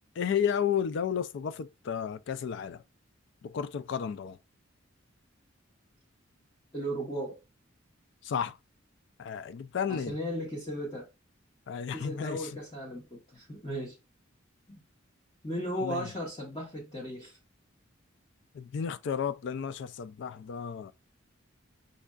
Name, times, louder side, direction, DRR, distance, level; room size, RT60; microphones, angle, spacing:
voice 1, 0.2-2.8 3.4-4.4 8.2-8.6 9.2-10.2 11.7-12.5 15.8-16.1 18.5-20.9, left 7 dB, 60° left, 0.3 m, -32 dB
voice 2, 6.7-7.4 9.9-11.1 11.9-14.0 14.7-14.8 15.4-17.4, equal, 20° left, 0.9 m, -36 dB
5.3 x 2.5 x 2.3 m
head